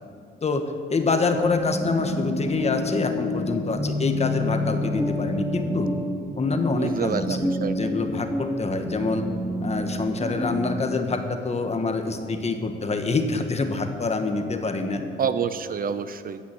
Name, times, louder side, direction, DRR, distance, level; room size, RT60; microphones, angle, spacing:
voice 1, 0.4-5.9 6.4-9.3 9.6-15.0, left 3 dB, 35° left, 6 dB, 1.3 m, -26 dB
sound 1, 1.2-11.1, left 1 dB, 5° left, 0.8 m, -29 dB
voice 2, 6.7-7.7 15.2-16.4, right 7 dB, 45° right, 12 dB, 0.6 m, -28 dB
16.0 x 6.0 x 7.8 m, 2.3 s
cardioid pair, 90°, 20 cm